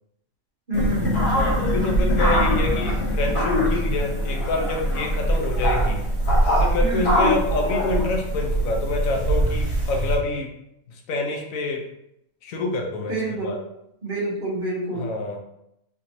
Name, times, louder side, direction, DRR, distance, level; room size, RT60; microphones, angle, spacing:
sound 1, 0.7-10.2, equal, 55° left, 1.1 m, -22 dB
voice 1, 0.7-1.3 6.8-7.1 13.1-13.5 14.0-15.1, right 2 dB, 40° right, -4 dB, 0.9 m, -27 dB
voice 2, 1.3-6.0 6.5-10.5 10.9-11.8 12.4-13.6 14.9-15.4, left 2 dB, 75° left, 2 dB, 1.1 m, -27 dB
3.4 x 2.9 x 2.6 m, 0.81 s
omnidirectional pair, 1.4 m